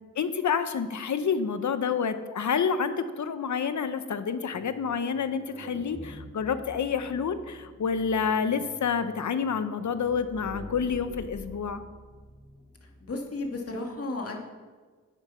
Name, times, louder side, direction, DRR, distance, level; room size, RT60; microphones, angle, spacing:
voice 1, 0.2-11.8, left 6 dB, 65° left, 11 dB, 0.9 m, -28 dB
sound 1, 4.5-13.3, equal, 20° left, 3.2 m, -47 dB
voice 2, 12.8-14.4, left 2 dB, 45° left, 1 dB, 2.2 m, -34 dB
10.0 x 8.7 x 5.6 m, 1.5 s
cardioid pair, 60°, 32 cm